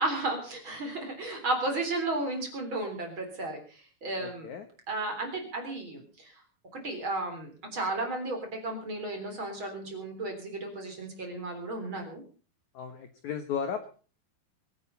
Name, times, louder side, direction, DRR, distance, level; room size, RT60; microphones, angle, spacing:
voice 1, 0.0-4.5 4.9-6.3 6.7-12.2, right 2 dB, 30° right, 4 dB, 3.8 m, -33 dB
voice 2, 4.2-4.6 12.7-13.9, left 7 dB, 75° left, 8 dB, 1.7 m, -35 dB
23.5 x 8.9 x 5.7 m, 0.39 s
omnidirectional pair, 5.4 m